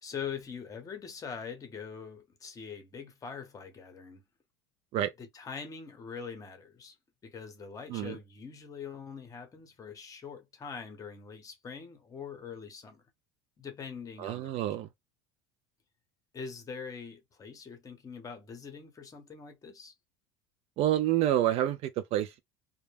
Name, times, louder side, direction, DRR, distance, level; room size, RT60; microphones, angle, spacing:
voice 1, 0.0-4.3 5.2-7.0 7.2-13.0 13.6-14.7 16.3-19.9, left 6 dB, 25° left, 0.8 m, -43 dB
voice 2, 14.2-14.9 20.8-22.4, right 12 dB, 50° right, 0.4 m, -28 dB
2.1 x 2.1 x 3.2 m
supercardioid pair, 110°, 14 cm